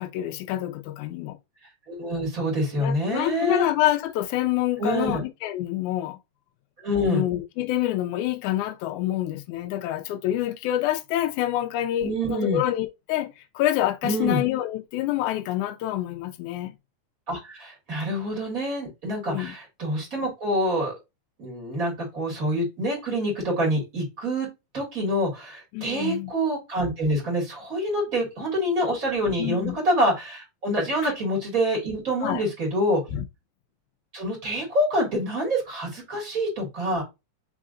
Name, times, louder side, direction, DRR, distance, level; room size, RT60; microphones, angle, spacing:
voice 1, 0.0-1.4 2.8-6.2 7.0-16.8 19.2-19.5 25.7-26.3 29.4-29.7 31.0-31.1 32.2-32.4 33.1-33.2, left 14 dB, 85° left, 1.7 m, -27 dB
voice 2, 1.9-3.7 4.8-5.2 6.8-7.2 12.0-12.6 14.0-14.4 17.3-20.9 21.4-24.5 24.7-33.0 34.1-37.0, equal, 30° right, 1.8 m, -26 dB
4.9 x 3.7 x 2.4 m
omnidirectional pair, 4.2 m